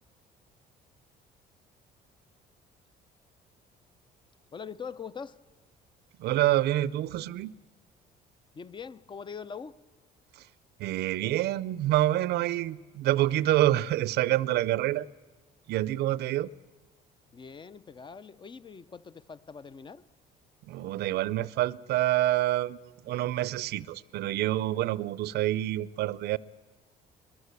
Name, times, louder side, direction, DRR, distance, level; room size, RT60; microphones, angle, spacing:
voice 1, 4.5-5.4 8.5-9.8 17.3-20.0, left 6 dB, 30° left, 0.7 m, -42 dB
voice 2, 6.2-7.5 10.4-10.5 10.8-15.1 15.7-16.5 20.7-22.8 23.0-26.4, right 14 dB, 75° right, 0.6 m, -27 dB
22.5 x 21.0 x 8.3 m
cardioid pair, 110°, 17 cm